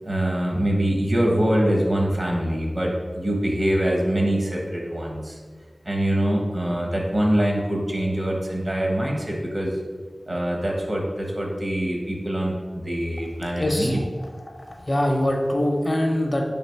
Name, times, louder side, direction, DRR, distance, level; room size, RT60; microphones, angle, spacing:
voice 1, 0.0-5.4 5.8-9.7 10.3-14.0, right 1 dB, 55° right, -1 dB, 0.9 m, -24 dB
voice 2, 13.6-14.0 14.3-16.4, left 1 dB, 45° left, 2 dB, 0.5 m, -23 dB
3.3 x 2.6 x 4.4 m, 1.5 s
wide cardioid pair, 45°, 0 cm